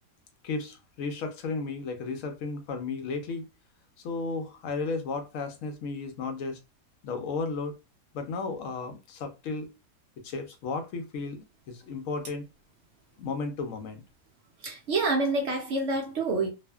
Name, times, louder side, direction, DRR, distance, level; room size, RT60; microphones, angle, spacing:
voice 1, 0.4-3.5 4.0-6.6 7.0-7.7 8.1-9.7 10.2-12.5 13.2-14.0, left 4 dB, 70° left, 0.8 m, -34 dB
voice 2, 14.6-16.5, right 3 dB, 75° right, 0.6 m, -27 dB
2.5 x 2.4 x 2.2 m
omnidirectional pair, 1.8 m